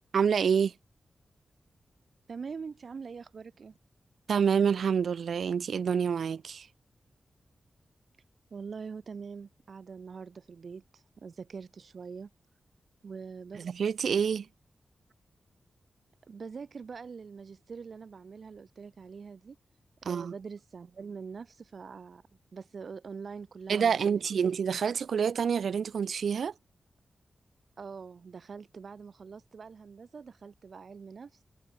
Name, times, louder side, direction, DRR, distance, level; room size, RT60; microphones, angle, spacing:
voice 1, 0.1-0.7 4.3-6.7 13.5-14.5 20.0-20.3 23.7-26.5, right 7 dB, 85° right, 0.9 m, -27 dB
voice 2, 2.3-3.7 8.5-12.3 13.0-13.7 16.3-19.6 20.0-22.2 22.5-24.4 27.8-31.4, right 5 dB, 60° right, 5.8 m, -44 dB
wide cardioid pair, 105°, 0 cm